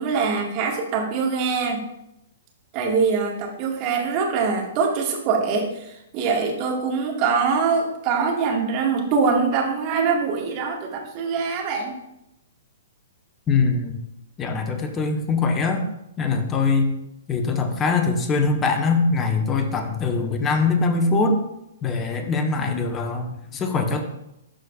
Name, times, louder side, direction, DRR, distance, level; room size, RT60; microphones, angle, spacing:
voice 1, 0.0-1.9 2.7-11.9, right 5 dB, 40° right, 0 dB, 1.8 m, -23 dB
voice 2, 13.5-14.0 14.4-15.8 16.2-16.9 17.3-21.4 21.8-24.0, left 4 dB, 20° left, 6 dB, 1.0 m, -22 dB
12.5 x 4.5 x 2.4 m, 0.84 s
figure-of-eight pair, 120°, 0 cm